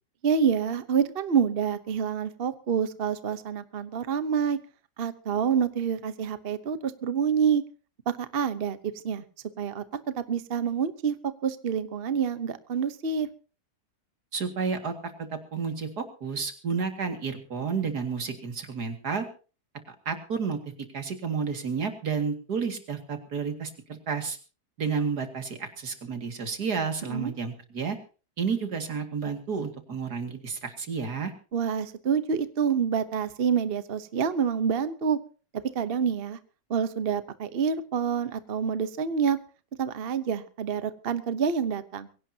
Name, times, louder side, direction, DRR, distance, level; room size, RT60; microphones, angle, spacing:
voice 1, 0.2-4.6 5.0-7.6 8.1-9.2 9.6-11.2 11.4-13.3 27.1-27.3 31.5-35.2 35.7-36.4 36.7-39.4 39.8-42.1, right 7 dB, 40° right, 12 dB, 1.1 m, -27 dB
voice 2, 14.3-19.3 19.9-20.6 20.9-24.4 24.8-28.0 28.4-31.3, right 5 dB, 75° right, 7 dB, 2.7 m, -31 dB
22.5 x 17.0 x 2.8 m, 0.36 s
omnidirectional pair, 1.7 m